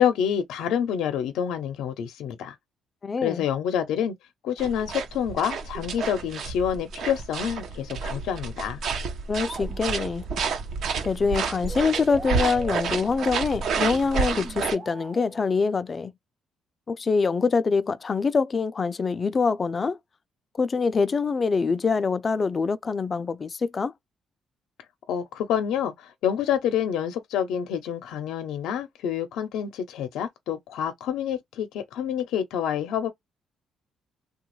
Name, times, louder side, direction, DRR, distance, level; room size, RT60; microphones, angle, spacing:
voice 1, 0.0-2.5 3.2-4.2 4.4-8.8 25.1-33.1, left 9 dB, 90° left, 0.6 m, -27 dB
voice 2, 3.0-3.4 9.3-10.3 11.0-16.1 16.9-20.0 20.6-23.9, left 4 dB, 30° left, 0.3 m, -25 dB
sound 1, 4.6-14.8, right 5 dB, 65° right, 0.7 m, -30 dB
sound 2, 9.4-10.3 11.7-13.6 14.4-15.7, right 2 dB, 25° right, 0.7 m, -41 dB
2.9 x 2.3 x 3.0 m
cardioid pair, 135°, 0 cm